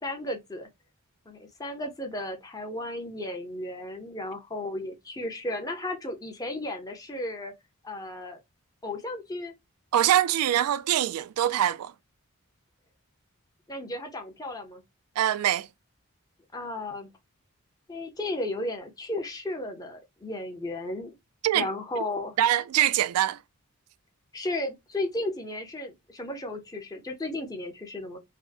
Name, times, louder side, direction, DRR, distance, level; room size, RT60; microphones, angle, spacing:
voice 1, 0.0-0.7 1.3-7.5 7.8-8.4 8.8-9.5 13.7-14.8 16.5-17.1 17.9-21.1 21.5-22.4 24.3-28.2, left 1 dB, 15° left, 0.7 m, -34 dB
voice 2, 9.9-11.9 15.2-15.7 21.4-21.7 22.4-23.4, right 12 dB, 85° right, 0.3 m, -23 dB
3.5 x 2.1 x 2.4 m
head